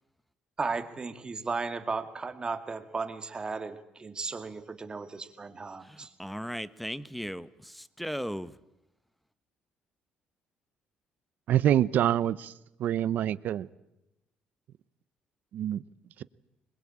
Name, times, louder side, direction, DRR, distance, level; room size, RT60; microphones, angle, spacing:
voice 1, 0.6-6.1, right 4 dB, 25° right, 8 dB, 2.2 m, -35 dB
voice 2, 5.9-8.5, equal, ahead, 15 dB, 1.1 m, -37 dB
voice 3, 11.5-12.5 12.8-13.7 15.5-15.8 16.2-16.3, right 11 dB, 65° right, 17 dB, 0.9 m, -26 dB
26.0 x 21.5 x 8.8 m, 0.91 s
cardioid pair, 95°, 3 cm